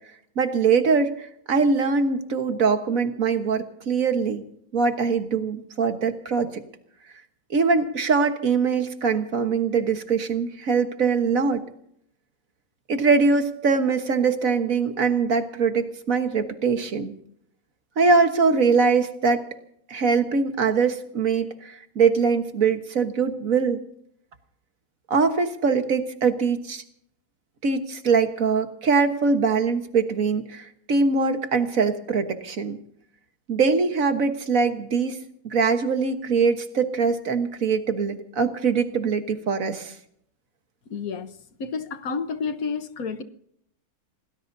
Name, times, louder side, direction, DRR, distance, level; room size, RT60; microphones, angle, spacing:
voice 1, 0.4-4.4 4.7-6.6 7.5-11.6 12.9-17.1 18.0-19.4 19.9-23.8 25.1-26.8 27.6-32.8 33.5-35.2 35.4-39.9, right 5 dB, 60° right, 7 dB, 1.7 m, -22 dB
voice 2, 40.9-43.2, left 5 dB, 65° left, 9 dB, 1.5 m, -30 dB
27.0 x 18.5 x 2.7 m, 0.69 s
omnidirectional pair, 1.6 m